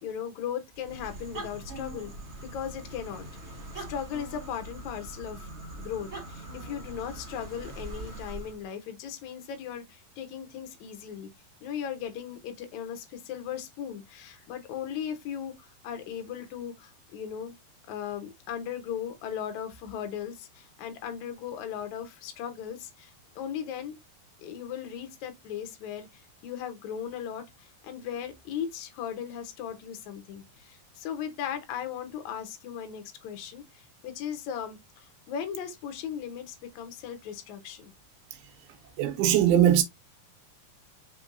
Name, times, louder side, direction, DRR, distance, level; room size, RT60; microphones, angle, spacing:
voice 1, 0.0-2.1 2.4-5.5 5.8-11.3 11.6-17.6 17.9-24.0 24.4-37.9, left 8 dB, 75° left, 1.7 m, -37 dB
sound 1, 0.7-8.6, right 2 dB, 55° right, 0.7 m, -42 dB
voice 2, 39.0-39.8, right 11 dB, 85° right, 2.6 m, -20 dB
5.5 x 3.4 x 2.6 m
omnidirectional pair, 4.5 m